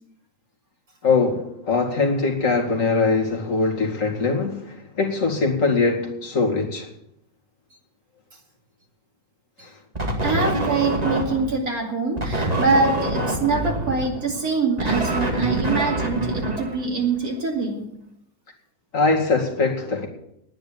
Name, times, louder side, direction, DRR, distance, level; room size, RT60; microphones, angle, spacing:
voice 1, 1.0-6.9 9.6-9.7 18.9-20.1, left 4 dB, 40° left, 2.6 m, -22 dB
sound 1, 10.0-11.6 12.2-17.3, right 2 dB, 20° right, 2.0 m, -25 dB
voice 2, 10.2-17.8, right 4 dB, 45° right, 2.9 m, -24 dB
10.5 x 9.4 x 8.9 m
omnidirectional pair, 2.2 m